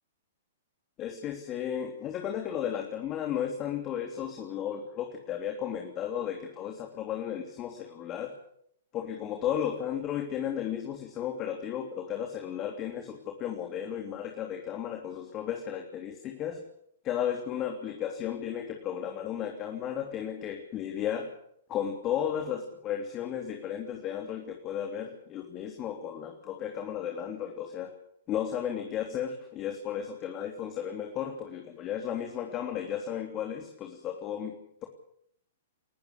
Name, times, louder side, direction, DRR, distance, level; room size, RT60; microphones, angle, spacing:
voice 1, 1.0-8.4 8.9-16.6 17.0-21.3 21.7-27.9 28.3-34.5, left 9 dB, 30° left, 3 dB, 3.2 m, -34 dB
30.0 x 14.5 x 8.4 m, 0.71 s
figure-of-eight pair, 110°, 0 cm